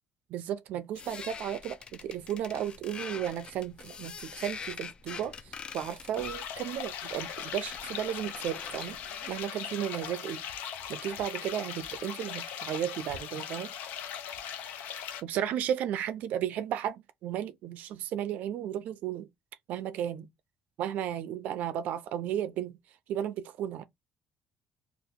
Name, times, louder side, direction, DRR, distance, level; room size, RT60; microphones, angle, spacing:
voice 1, 0.3-9.0 9.3-10.4 10.9-13.7 15.2-19.3 19.7-20.3 20.8-22.8 23.1-23.8, right 10 dB, 75° right, 0.4 m, -34 dB
sound 1, 0.9-9.4, left 6 dB, 35° left, 0.4 m, -44 dB
sound 2, 6.2-15.2, left 9 dB, 85° left, 0.6 m, -39 dB
2.8 x 2.4 x 3.6 m
cardioid pair, 130°, 3 cm